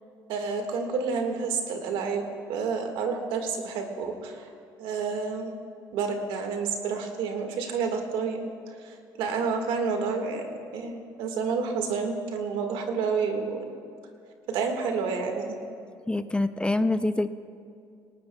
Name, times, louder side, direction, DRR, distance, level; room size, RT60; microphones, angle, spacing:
voice 1, 0.3-2.2 2.5-4.4 4.8-5.5 5.9-8.5 8.8-10.4 10.7-13.6 14.5-15.5, right 5 dB, 80° right, 4 dB, 1.7 m, -29 dB
voice 2, 16.1-17.3, left 2 dB, 10° left, 12 dB, 0.5 m, -25 dB
19.0 x 18.0 x 2.3 m, 2.4 s
supercardioid pair, 80°, 9 cm